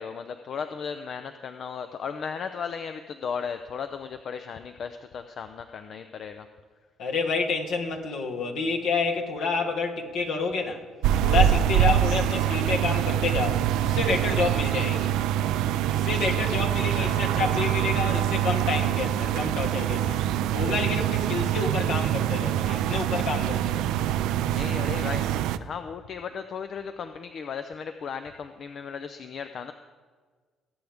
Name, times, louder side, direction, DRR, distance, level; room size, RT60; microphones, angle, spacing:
voice 1, 0.0-6.5 11.4-11.5 16.1-17.3 24.5-29.7, left 6 dB, 55° left, 0.6 m, -36 dB
voice 2, 7.0-10.8 11.2-15.1 15.9-20.2 20.5-23.8, left 4 dB, 75° left, 1.6 m, -29 dB
sound 1, 11.0-25.6, right 11 dB, 75° right, 0.4 m, -25 dB
20.0 x 8.0 x 3.6 m
hypercardioid pair, 55°, 0 cm